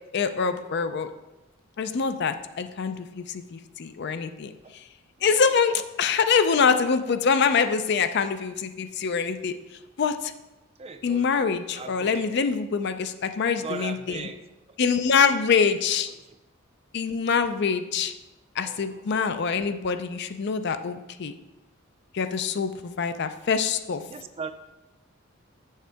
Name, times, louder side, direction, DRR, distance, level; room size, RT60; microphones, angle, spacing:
voice 1, 0.1-1.1 1.8-4.5 5.2-9.5 10.0-10.3 11.0-14.3 14.8-16.1 16.9-18.1 18.6-21.3 22.1-24.0, left 5 dB, 55° left, 10 dB, 0.4 m, -25 dB
voice 2, 10.8-12.3 13.6-14.4 18.6-19.0 24.1-24.5, right 5 dB, 30° right, 9 dB, 0.4 m, -38 dB
7.5 x 6.4 x 3.4 m, 1.0 s
head